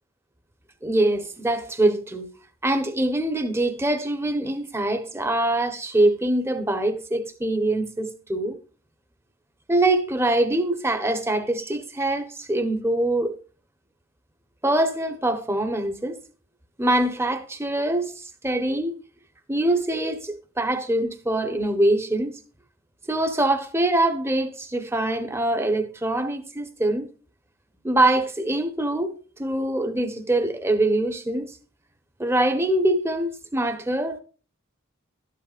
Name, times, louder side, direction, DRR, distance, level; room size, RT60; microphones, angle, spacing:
voice 1, 0.8-2.3 2.6-8.6 9.7-13.4 14.6-16.2 16.8-18.9 19.5-22.3 23.1-27.1 27.8-29.1 29.4-31.5 32.2-34.2, right 1 dB, 10° right, 1.1 m, -24 dB
13.0 x 11.0 x 2.5 m
head